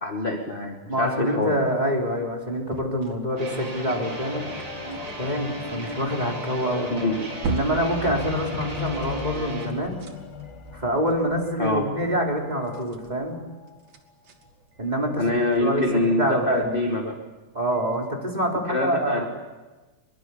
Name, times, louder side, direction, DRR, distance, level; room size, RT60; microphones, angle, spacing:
voice 1, 0.0-1.6 6.9-7.2 11.6-11.9 15.2-17.1 18.7-19.2, left 1 dB, 20° left, 3 dB, 1.6 m, -25 dB
voice 2, 0.9-4.4 5.2-6.9 7.4-10.0 10.7-13.4 14.8-16.8 17.5-19.3, equal, 15° right, 0 dB, 3.6 m, -26 dB
sound 1, 1.8-8.6 9.6-18.1, right 3 dB, 60° right, 3.1 m, -41 dB
sound 2, 3.3-12.8 13.6-13.7, left 7 dB, 80° left, 3.6 m, -38 dB
sound 3, 3.4-9.7, right 2 dB, 35° right, 4.7 m, -36 dB
23.5 x 22.5 x 8.5 m, 1.2 s
omnidirectional pair, 3.5 m